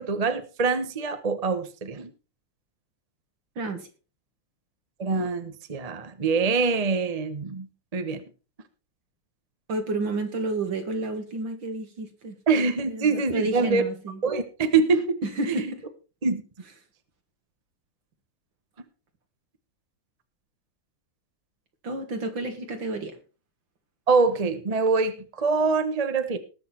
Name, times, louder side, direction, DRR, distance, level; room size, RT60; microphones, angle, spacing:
voice 1, 0.0-2.1 5.0-8.2 12.5-13.8 14.2-15.2 15.5-15.6 16.2-16.4 24.1-26.4, right 4 dB, 25° right, 9 dB, 0.8 m, -24 dB
voice 2, 3.6-3.9 9.7-12.4 12.9-14.2 15.2-15.8 21.8-23.1, right 2 dB, 65° right, 6 dB, 2.8 m, -30 dB
19.5 x 6.6 x 4.5 m, 0.34 s
omnidirectional pair, 2.3 m